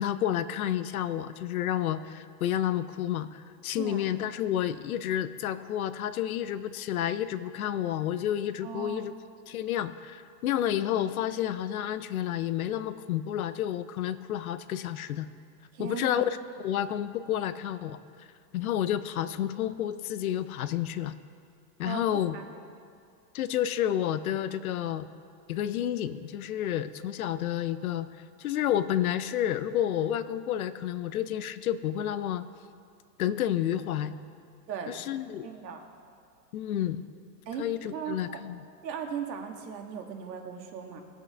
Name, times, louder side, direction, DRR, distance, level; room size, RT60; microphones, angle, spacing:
voice 1, 0.0-9.1 9.5-15.3 15.8-16.4 16.6-18.0 18.5-21.1 21.8-22.4 23.3-25.1 25.5-28.1 28.4-32.4 33.2-34.2 34.9-35.5 36.5-37.1 37.6-38.6, left 11 dB, 60° left, 14 dB, 0.6 m, -30 dB
voice 2, 8.6-9.1 15.7-16.2 21.8-22.4 34.7-35.0 35.4-35.8 37.4-38.4 38.8-41.0, right 7 dB, 80° right, 4 dB, 1.6 m, -38 dB
19.0 x 8.0 x 3.3 m, 2.3 s
supercardioid pair, 180°, 49 cm